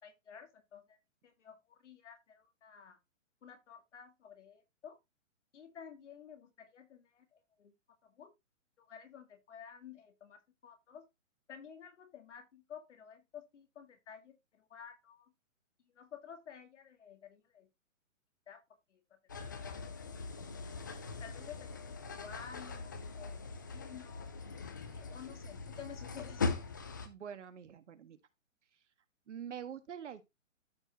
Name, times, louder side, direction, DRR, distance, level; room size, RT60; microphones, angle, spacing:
voice 1, 0.0-3.0 3.4-5.0 5.5-7.7 8.0-8.3 8.8-11.0 11.5-15.3 16.0-17.7 18.5-18.6 18.9-19.0 19.4-19.9 20.4-20.5 21.2-23.5 23.7-24.3 24.9-26.5, left 8 dB, 65° left, 2.1 m, -52 dB
sound 1, 19.3-27.1, left 4 dB, 15° left, 0.4 m, -41 dB
voice 2, 27.0-28.2 29.3-30.2, right 8 dB, 65° right, 1.6 m, -45 dB
13.5 x 4.6 x 2.9 m
hypercardioid pair, 155°, 39 cm